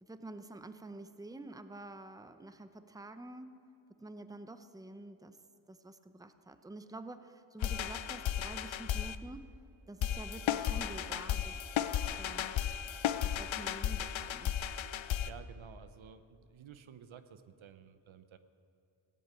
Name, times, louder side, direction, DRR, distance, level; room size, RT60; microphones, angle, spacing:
voice 1, 0.0-3.6 3.9-5.4 5.7-9.5 9.9-11.9 12.2-12.6 13.2-14.6, right 2 dB, 10° right, 10 dB, 0.7 m, -48 dB
sound 1, 7.6-9.2 10.0-15.3, left 10 dB, 75° left, 0.6 m, -34 dB
voice 2, 15.2-18.4, right 7 dB, 75° right, 11 dB, 0.9 m, -53 dB
16.0 x 8.7 x 9.1 m, 2.6 s
cardioid pair, 75°, 47 cm